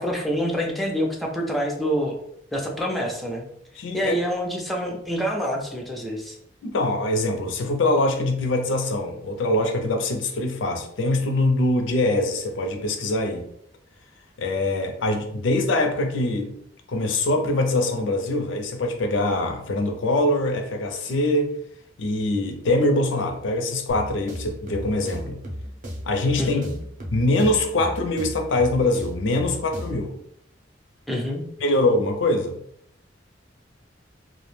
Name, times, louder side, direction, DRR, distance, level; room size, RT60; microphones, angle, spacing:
voice 1, 0.0-2.2 2.5-3.5 3.9-6.4 26.4-26.7 31.1-31.4, equal, ahead, 0 dB, 0.3 m, -26 dB
voice 2, 3.8-4.2 6.6-13.5 14.4-16.6 16.9-21.6 22.0-25.4 26.1-26.6 27.1-30.2 31.6-32.6, left 2 dB, 80° left, 5 dB, 0.4 m, -23 dB
sound 1, 23.9-30.1, equal, 45° right, 0.6 m, -36 dB
2.3 x 2.0 x 3.1 m, 0.72 s
head